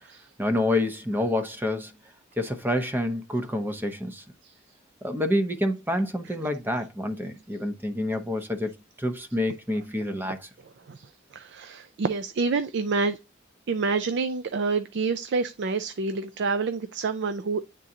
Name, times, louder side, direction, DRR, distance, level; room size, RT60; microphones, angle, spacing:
voice 1, 0.4-2.0 2.4-4.2 5.0-8.7 9.0-10.5, left 1 dB, 10° right, 0.7 m, -28 dB
voice 2, 10.9-13.2 13.7-17.6, right 4 dB, 55° right, 0.4 m, -28 dB
9.6 x 3.7 x 2.7 m
head